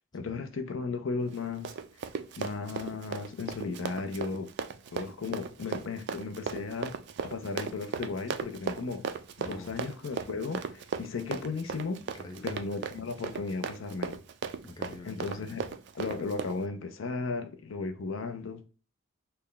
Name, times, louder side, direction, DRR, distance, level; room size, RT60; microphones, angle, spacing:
voice 1, 0.1-1.7 2.4-4.5 4.9-7.0 7.2-12.0 12.4-14.2 15.0-18.6, left 4 dB, 75° left, 0.5 m, -35 dB
Run, 1.3-16.6, right 6 dB, 60° right, 0.3 m, -37 dB
voice 2, 9.4-9.7 12.2-12.5 14.6-15.6, left 2 dB, 20° left, 0.4 m, -45 dB
3.3 x 2.2 x 3.8 m
head